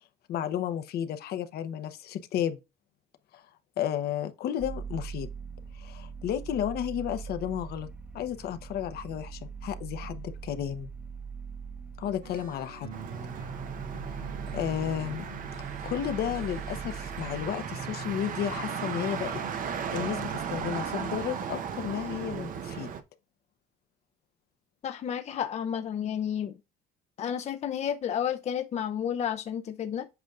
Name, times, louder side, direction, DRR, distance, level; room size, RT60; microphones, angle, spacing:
voice 1, 0.3-2.6 3.3-3.4 3.8-5.3 5.8-7.9 8.1-10.9 12.0-12.9 14.5-15.2 15.8-19.4 19.9-22.9, left 10 dB, 70° left, 0.9 m, -32 dB
sound 1, 4.6-17.5, right 6 dB, 5° right, 0.9 m, -42 dB
sound 2, 12.2-20.3, right 3 dB, 80° right, 3.1 m, -44 dB
Motor vehicle (road), 12.9-23.0, right 7 dB, 55° right, 0.8 m, -36 dB
voice 2, 24.8-26.6 27.2-30.1, left 9 dB, 40° left, 0.6 m, -31 dB
8.0 x 5.1 x 2.4 m
cardioid pair, 110°, 17 cm